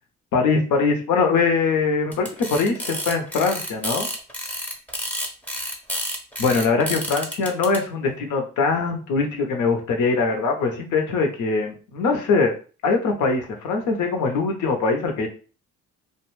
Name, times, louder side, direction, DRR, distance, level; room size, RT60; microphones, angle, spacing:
voice 1, 0.3-4.1 6.4-12.5 12.8-15.3, left 4 dB, 75° left, 4 dB, 0.8 m, -22 dB
sound 1, 2.1-7.8, equal, 5° left, 0.6 m, -30 dB
2.4 x 2.2 x 3.1 m, 0.36 s
cardioid pair, 90°, 30 cm